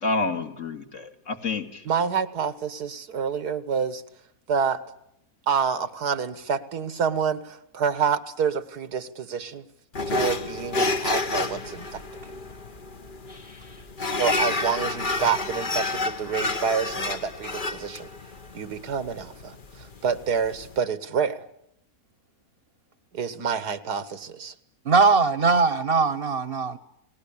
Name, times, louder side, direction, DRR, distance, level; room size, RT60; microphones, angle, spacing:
voice 1, 0.0-1.9 13.3-13.8, left 3 dB, 50° left, 2.7 m, -30 dB
voice 2, 1.9-4.0 4.5-4.8 5.5-9.6 10.1-12.0 14.2-18.1 18.5-19.6 20.0-21.5 23.1-24.5, right 6 dB, 90° right, 2.0 m, -27 dB
sound 1, 9.9-20.8, left 3 dB, 35° left, 1.3 m, -30 dB
voice 3, 24.8-26.8, right 4 dB, 40° right, 1.2 m, -20 dB
29.5 x 19.5 x 8.6 m
omnidirectional pair, 1.6 m